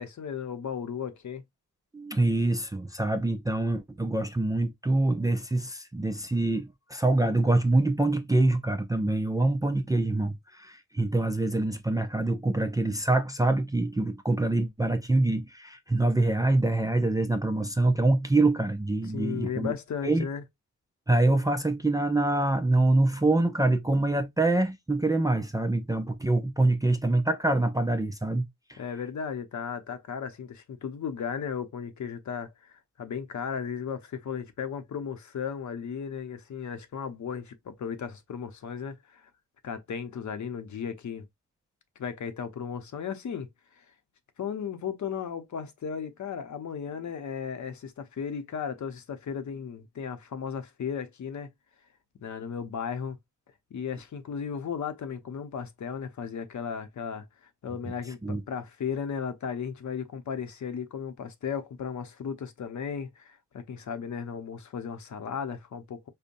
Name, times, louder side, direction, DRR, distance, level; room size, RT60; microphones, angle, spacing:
voice 1, 0.0-1.4 19.1-20.4 28.8-39.3 39.6-41.3 42.0-43.5 43.7-43.8 44.4-51.5 52.2-53.2 53.7-66.1, left 7 dB, 65° left, 0.8 m, -35 dB
voice 2, 1.9-19.7 20.0-20.3 21.1-28.4 28.7-28.8 58.2-58.4, right 2 dB, 10° right, 0.4 m, -25 dB
5.2 x 2.1 x 2.5 m
wide cardioid pair, 145°, 31 cm